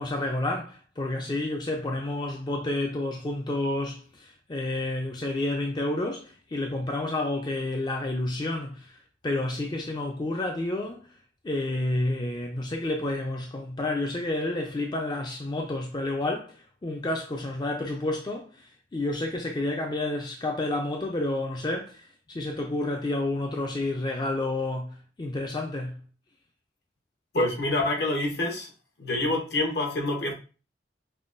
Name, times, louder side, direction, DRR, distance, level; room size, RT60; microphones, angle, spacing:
voice 1, 0.0-11.1 11.4-26.0, left 2 dB, 25° left, 0.4 m, -30 dB
voice 2, 27.3-28.7 29.0-30.3, left 2 dB, 65° left, 0.9 m, -26 dB
5.4 x 2.2 x 2.5 m
head